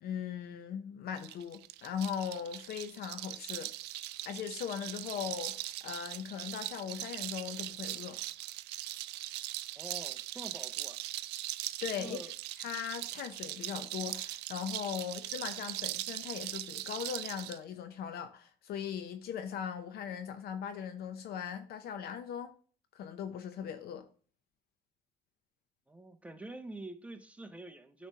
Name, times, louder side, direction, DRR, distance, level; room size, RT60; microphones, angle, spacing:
voice 1, 0.0-3.7 4.3-8.2 11.8-12.2 12.6-22.5 22.9-24.1, left 8 dB, 70° left, 0.7 m, -39 dB
sound 1, 1.2-17.6, right 16 dB, 85° right, 0.4 m, -40 dB
voice 2, 9.7-11.0 12.0-12.3 25.9-28.1, right 2 dB, 10° right, 0.9 m, -46 dB
9.5 x 3.3 x 5.5 m
cardioid pair, 110°, 17 cm